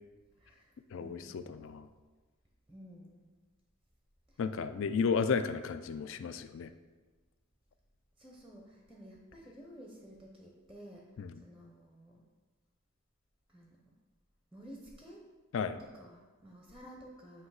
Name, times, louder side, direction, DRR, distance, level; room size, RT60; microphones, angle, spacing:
voice 1, 0.4-1.5 2.7-3.2 4.3-4.4 8.2-11.1 11.3-12.2 13.5-13.9 14.5-15.3 15.8-17.5, equal, ahead, -1 dB, 0.6 m, -53 dB
voice 2, 0.9-1.9 4.4-6.7 11.2-11.3 15.5-15.8, left 5 dB, 55° left, 11 dB, 0.3 m, -33 dB
8.0 x 2.8 x 4.7 m, 1.3 s
head